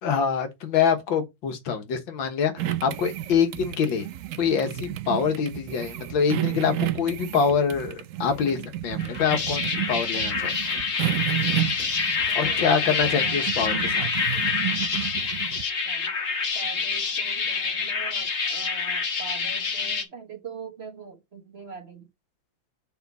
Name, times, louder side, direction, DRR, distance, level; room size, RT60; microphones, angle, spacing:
voice 1, 0.0-4.1 4.4-10.6 12.3-14.1, left 6 dB, 85° left, 2.0 m, -25 dB
sound 1, 2.6-15.6, right 13 dB, 90° right, 0.7 m, -32 dB
sound 2, 9.0-20.0, left 5 dB, 40° left, 1.3 m, -27 dB
voice 2, 12.3-13.5 15.8-16.1 16.5-22.1, right 5 dB, 40° right, 1.3 m, -42 dB
7.2 x 5.0 x 4.0 m
omnidirectional pair, 2.1 m